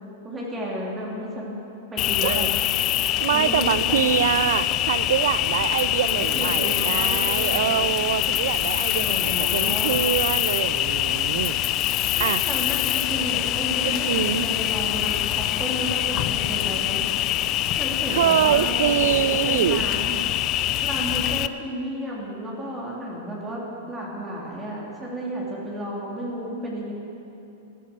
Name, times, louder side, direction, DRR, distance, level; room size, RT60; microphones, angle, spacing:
voice 1, 0.2-1.5 1.9-2.5 3.3-4.2 6.0-7.9 8.9-9.9 12.2-17.0 17.7-20.1 20.8-26.9, right 1 dB, 20° right, -4 dB, 3.1 m, -32 dB
Cricket, 2.0-21.5, left 14 dB, 40° left, 0.4 m, -24 dB
voice 2, 3.2-11.9 12.2-12.4 13.8-14.5 18.1-19.9, right 10 dB, 70° right, 16 dB, 0.5 m, -25 dB
15.0 x 10.0 x 6.9 m, 2.8 s
hypercardioid pair, 115°, 0 cm